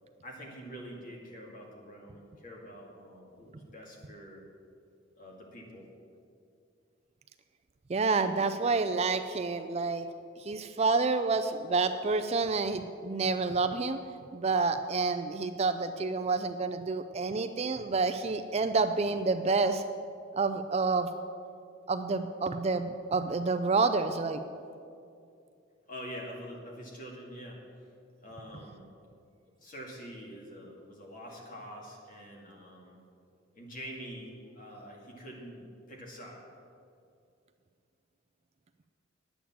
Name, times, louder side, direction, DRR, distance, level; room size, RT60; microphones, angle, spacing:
voice 1, 0.2-4.4 5.2-5.9 25.9-27.6 28.2-28.8 29.6-33.0 33.5-36.4, equal, 40° left, -1 dB, 2.2 m, -45 dB
voice 2, 7.9-10.1 10.4-14.0 14.3-19.8 20.4-21.1 21.9-24.4, right 4 dB, 30° right, 9 dB, 0.4 m, -28 dB
10.0 x 8.5 x 7.2 m, 2.4 s
head